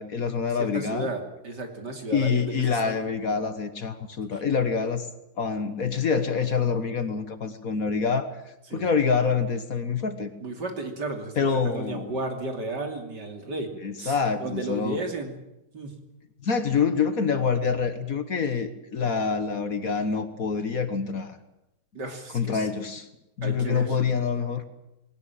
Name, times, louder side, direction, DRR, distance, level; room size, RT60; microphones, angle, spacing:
voice 1, 0.0-1.1 2.1-5.1 5.4-8.4 8.7-10.3 11.4-12.1 13.8-15.0 16.4-21.4 22.3-23.1 23.4-24.6, left 5 dB, 50° left, 10 dB, 1.6 m, -26 dB
voice 2, 0.6-2.9 4.3-4.4 8.7-8.8 10.4-13.7 14.0-15.4 15.7-16.0 21.9-22.7 23.4-24.0, right 2 dB, 65° right, 4 dB, 3.5 m, -33 dB
20.0 x 18.0 x 9.0 m, 0.89 s
omnidirectional pair, 2.0 m